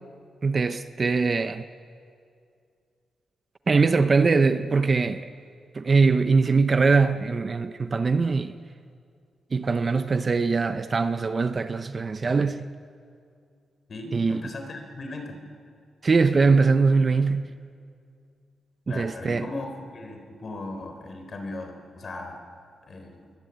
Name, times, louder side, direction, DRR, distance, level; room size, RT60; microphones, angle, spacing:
voice 1, 0.4-1.6 3.7-5.2 5.7-8.5 9.5-12.7 14.1-14.4 16.0-17.6 18.9-19.5, right 4 dB, 30° right, 0.7 m, -22 dB
voice 2, 13.9-15.4 18.9-22.4 22.8-23.1, left 2 dB, 40° left, 4.0 m, -37 dB
28.5 x 22.5 x 9.3 m
wide cardioid pair, 165°, 0 cm